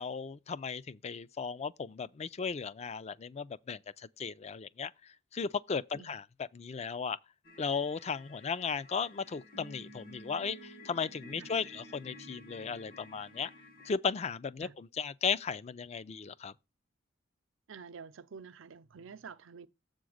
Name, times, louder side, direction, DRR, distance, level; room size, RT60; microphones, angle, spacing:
voice 1, 0.0-4.9 5.3-6.2 6.5-7.2 7.6-13.5 13.8-16.5, left 5 dB, 35° left, 0.4 m, -36 dB
sound 1, 7.4-13.9, equal, 50° left, 1.5 m, -52 dB
voice 2, 17.7-19.7, right 6 dB, 90° right, 0.6 m, -48 dB
7.8 x 3.8 x 6.3 m
head